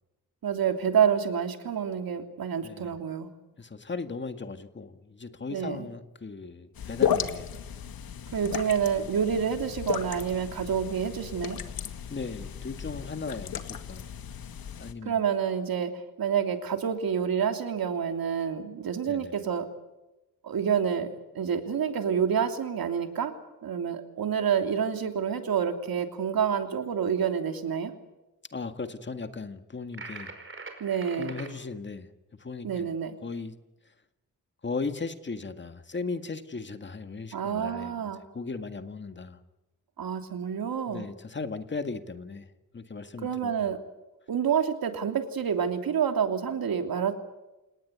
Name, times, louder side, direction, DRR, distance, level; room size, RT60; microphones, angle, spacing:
voice 1, 0.4-3.3 5.5-5.9 8.3-11.6 15.0-15.9 16.2-19.7 20.4-21.1 21.3-23.4 23.6-27.9 30.8-31.3 32.6-33.1 37.3-38.2 40.0-41.0 43.2-43.8 44.3-47.1, right 7 dB, 90° right, 6 dB, 3.1 m, -28 dB
voice 2, 3.6-7.5 12.1-14.1 14.8-15.2 19.1-19.3 28.5-30.3 31.2-32.1 32.4-32.9 33.2-33.5 34.6-39.4 40.9-42.5 42.7-43.7, left 4 dB, 30° left, 9 dB, 1.9 m, -37 dB
sound 1, 6.7-14.9, left 9 dB, 90° left, 2.0 m, -34 dB
sound 2, 29.9-31.5, right 3 dB, 35° right, 4.9 m, -42 dB
29.0 x 19.0 x 8.3 m, 1.0 s
wide cardioid pair, 150°, 35 cm